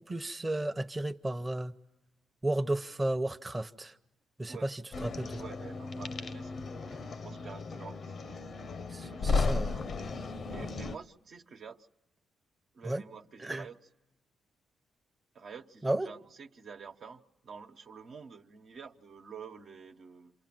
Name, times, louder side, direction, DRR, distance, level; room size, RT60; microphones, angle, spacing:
voice 1, 0.0-1.7 2.4-3.9 4.4-5.4 8.9-9.7 12.8-13.0 13.4-13.7 15.8-16.1, right 1 dB, 20° right, 0.9 m, -33 dB
sound 1, 4.9-11.0, left 4 dB, 55° left, 0.9 m, -35 dB
voice 2, 5.4-8.4 9.1-9.9 10.5-11.9 12.7-13.8 15.3-20.3, right 6 dB, 65° right, 1.1 m, -49 dB
28.0 x 27.0 x 7.6 m
supercardioid pair, 60°, 0 cm